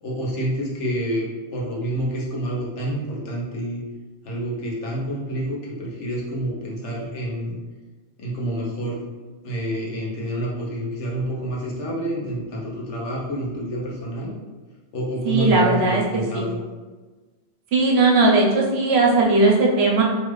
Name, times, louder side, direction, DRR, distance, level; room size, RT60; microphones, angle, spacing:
voice 1, 0.0-3.8 4.2-7.6 8.2-9.0 9.4-14.3 14.9-16.6, right 1 dB, 90° left, -4 dB, 1.2 m, -28 dB
voice 2, 15.2-16.4 17.7-20.0, right 3 dB, 70° right, -2 dB, 0.9 m, -18 dB
3.0 x 2.4 x 3.1 m, 1.3 s
omnidirectional pair, 1.2 m